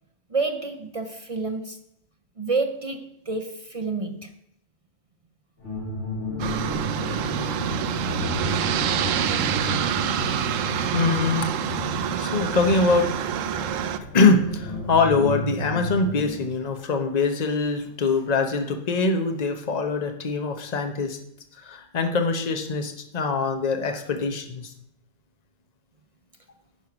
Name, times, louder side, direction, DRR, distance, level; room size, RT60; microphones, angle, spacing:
voice 1, 0.3-1.8 2.4-4.3, right 3 dB, 45° right, 0.4 m, -29 dB
sound 1, 5.6-16.5, left 1 dB, 60° left, 3.3 m, -33 dB
Aircraft, 6.4-14.0, right 8 dB, 75° right, 0.9 m, -27 dB
voice 2, 10.1-11.5 12.2-13.1 14.1-21.2 21.6-24.7, left 4 dB, 35° left, 1.0 m, -23 dB
11.0 x 4.7 x 5.9 m
omnidirectional pair, 1.4 m